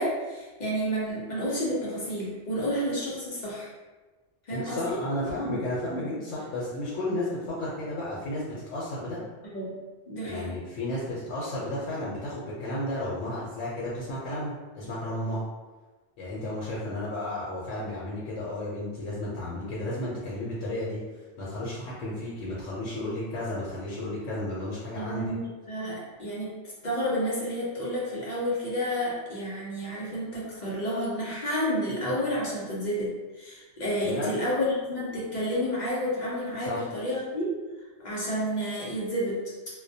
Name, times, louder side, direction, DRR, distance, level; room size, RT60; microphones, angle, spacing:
voice 1, 0.0-3.7 4.5-4.9 9.5-9.7 10.1-10.5 24.9-25.4 25.7-26.5 26.8-37.6 38.0-39.4, equal, 50° left, -6 dB, 0.5 m, -30 dB
voice 2, 4.5-9.2 10.2-15.4 16.2-21.0 21.4-25.3 34.0-34.3 36.6-36.9, left 1 dB, 85° left, -7 dB, 1.0 m, -33 dB
2.2 x 2.1 x 2.6 m, 1.3 s
omnidirectional pair, 1.3 m